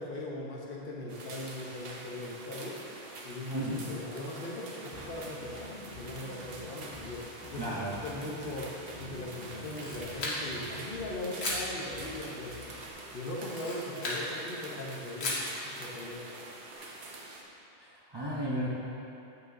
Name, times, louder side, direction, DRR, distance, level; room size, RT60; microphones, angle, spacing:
voice 1, 0.0-2.8 3.2-7.2 7.5-8.7 9.0-12.6 13.1-16.2, left 1 dB, 60° left, -3 dB, 1.0 m, -39 dB
sound 1, 1.1-17.4, right 2 dB, 65° right, 1.0 m, -46 dB
voice 2, 3.5-3.9 7.6-8.0 17.8-18.7, equal, 25° right, -7 dB, 0.7 m, -34 dB
sound 2, 4.9-12.9, left 1 dB, 15° left, 1.5 m, -49 dB
Camera, 9.5-10.7 11.4-11.7 13.4-14.2 15.2-15.5, left 2 dB, 80° left, 1.4 m, -35 dB
8.8 x 6.1 x 2.6 m, 2.8 s
omnidirectional pair, 1.1 m